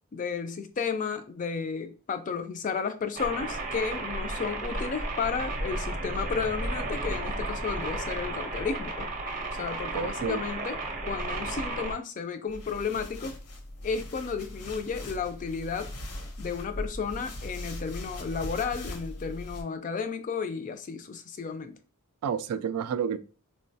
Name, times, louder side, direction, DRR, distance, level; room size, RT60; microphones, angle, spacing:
voice 1, 0.1-9.1 9.6-10.8 11.0-13.4 13.8-15.9 16.4-21.8, left 5 dB, 35° left, 0.3 m, -33 dB
sound 1, 3.2-11.9, right 2 dB, 35° right, 0.6 m, -33 dB
voice 2, 9.9-10.4 22.2-23.2, right 7 dB, 85° right, 0.3 m, -30 dB
sound 2, 12.5-19.6, left 1 dB, 75° left, 0.7 m, -40 dB
3.7 x 2.1 x 2.7 m
head